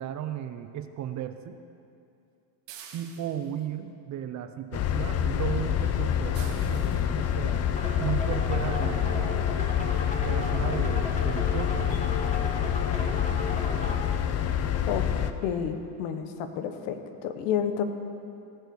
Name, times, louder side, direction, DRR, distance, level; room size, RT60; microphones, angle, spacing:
voice 1, 0.0-1.6 2.9-7.7 8.0-9.3 10.2-11.9, right 10 dB, 35° right, 9 dB, 0.6 m, -35 dB
sound 1, 2.7-3.6 6.3-7.1 8.6-8.7 9.3-9.4 9.7-9.8 10.1-10.2, right 8 dB, 60° right, 1.9 m, -48 dB
sound 2, 4.7-15.3, left 9 dB, 30° left, 0.5 m, -27 dB
sound 3, 7.7-14.0, left 2 dB, 15° left, 1.7 m, -36 dB
voice 2, 15.4-17.8, left 8 dB, 75° left, 8 dB, 1.3 m, -30 dB
18.0 x 6.8 x 7.0 m, 2.6 s
cardioid pair, 145°, 49 cm